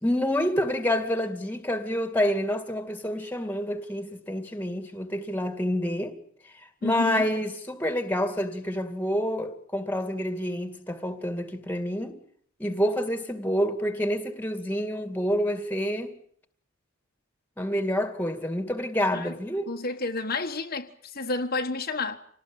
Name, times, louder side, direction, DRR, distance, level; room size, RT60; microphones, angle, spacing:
voice 1, 0.0-6.2 6.8-12.2 12.6-16.1 17.6-19.7, equal, 10° left, 2.2 m, -28 dB
voice 2, 6.8-7.3 19.1-19.3 19.7-22.2, left 3 dB, 45° left, 1.5 m, -30 dB
27.5 x 19.0 x 8.8 m
head